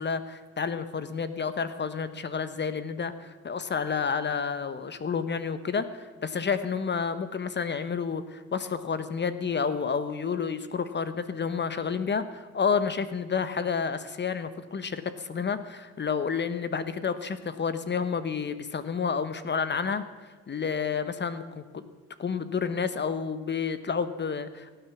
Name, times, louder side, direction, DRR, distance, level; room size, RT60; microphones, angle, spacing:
voice 1, 0.0-21.8 22.2-24.8, left 6 dB, 35° left, 12 dB, 0.9 m, -30 dB
17.0 x 9.2 x 7.0 m, 1.4 s
cardioid pair, 90°, 30 cm